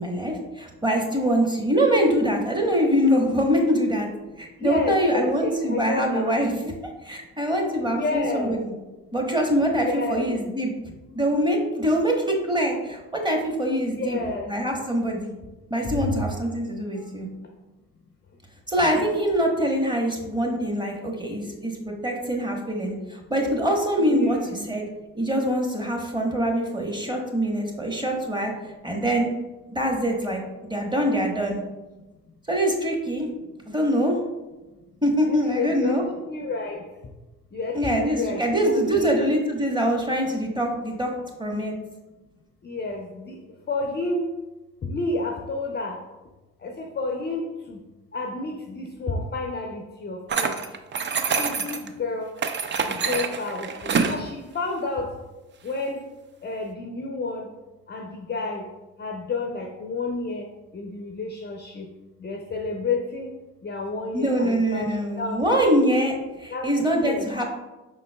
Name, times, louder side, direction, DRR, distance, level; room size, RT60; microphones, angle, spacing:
voice 1, 0.0-4.1 4.4-6.7 7.0-8.7 9.1-10.7 11.1-14.2 14.5-15.3 15.7-17.3 18.7-24.9 25.1-28.5 28.8-29.3 29.7-31.6 32.5-33.3 33.7-34.2 35.0-36.0 37.7-41.1 41.4-41.7 64.1-67.4, equal, 10° right, 1 dB, 1.0 m, -24 dB
voice 2, 4.6-6.4 7.9-8.5 9.8-10.3 13.9-14.5 15.8-16.2 24.0-24.7 35.3-35.9 36.3-36.8 37.5-39.2 42.6-43.4 43.7-44.3 44.8-46.0 46.6-47.8 48.1-50.6 51.3-52.3 52.8-55.1 55.6-56.0 56.4-57.5 57.9-58.7 59.0-60.5 60.7-61.9 62.2-63.3 63.6-65.6 66.5-67.3, left 3 dB, 25° left, 2 dB, 0.5 m, -30 dB
sound 1, 50.3-51.9 52.4-54.2, right 5 dB, 30° right, 0.4 m, -26 dB
5.3 x 3.9 x 2.2 m, 1.1 s
hypercardioid pair, 60°, 39 cm